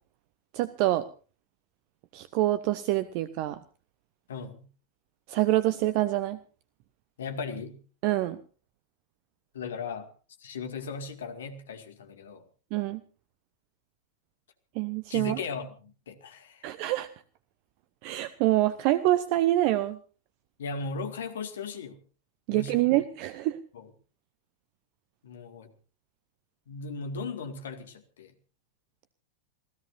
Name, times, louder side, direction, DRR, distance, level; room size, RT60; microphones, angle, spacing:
voice 1, 0.5-1.1 2.1-3.6 5.3-6.4 8.0-8.4 12.7-13.0 14.7-15.4 16.6-17.1 18.0-20.0 22.5-23.6, right 15 dB, 45° right, 14 dB, 0.8 m, -26 dB
voice 2, 4.3-4.7 7.2-7.8 9.5-10.1 10.4-12.4 15.1-16.7 20.6-22.0 22.5-22.9 23.7-23.9 25.2-25.7 26.7-28.3, left 4 dB, 65° left, 7 dB, 2.1 m, -37 dB
28.5 x 16.5 x 2.6 m, 0.37 s
figure-of-eight pair, 90°, 0 cm